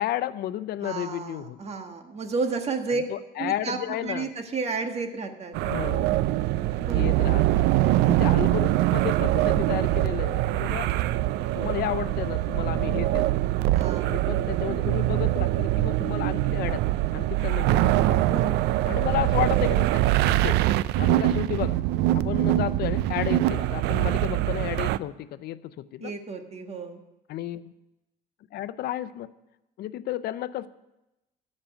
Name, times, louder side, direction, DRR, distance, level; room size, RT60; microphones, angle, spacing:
voice 1, 0.0-1.6 2.9-4.3 5.6-6.1 6.9-10.9 11.5-13.3 14.0-16.8 17.1-18.4 18.8-20.6 21.0-21.8 22.1-26.1 27.3-27.7 28.5-29.3 29.8-30.7, left 12 dB, 70° left, 15 dB, 0.6 m, -32 dB
voice 2, 0.8-3.0 3.4-5.5 6.8-7.1 13.7-14.2 18.2-18.8 26.0-27.0, right 4 dB, 40° right, 5 dB, 1.6 m, -32 dB
sound 1, 5.5-25.0, right 15 dB, 85° right, 0.4 m, -23 dB
14.0 x 5.4 x 9.0 m, 0.95 s
cardioid pair, 110°, 17 cm